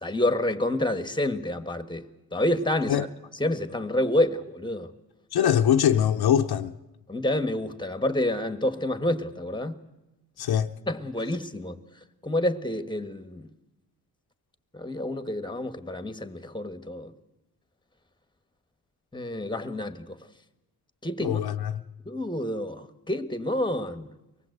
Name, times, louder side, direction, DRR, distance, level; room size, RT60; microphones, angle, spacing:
voice 1, 0.0-2.1 2.3-3.1 3.4-4.9 7.1-9.7 10.9-11.7 12.2-13.5 14.7-17.1 19.1-20.2 21.0-21.4 22.0-24.1, left 1 dB, 10° left, 1.4 m, -28 dB
voice 2, 5.3-6.7 10.4-10.7 21.2-21.8, left 9 dB, 90° left, 0.8 m, -23 dB
24.0 x 19.0 x 8.0 m
cardioid pair, 80°, 37 cm